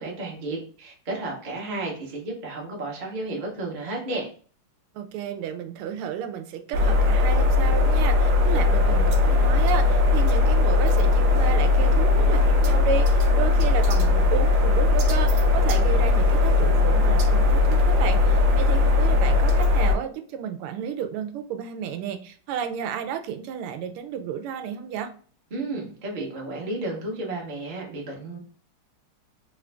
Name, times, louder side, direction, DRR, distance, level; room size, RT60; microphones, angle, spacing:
voice 1, 0.0-4.3 25.5-28.4, right 2 dB, 45° right, -2 dB, 0.6 m, -32 dB
voice 2, 4.9-25.1, right 8 dB, 85° right, 7 dB, 1.5 m, -32 dB
sound 1, 6.7-20.0, left 3 dB, 65° right, 1.0 m, -19 dB
3.7 x 2.5 x 3.3 m, 0.42 s
omnidirectional pair, 2.4 m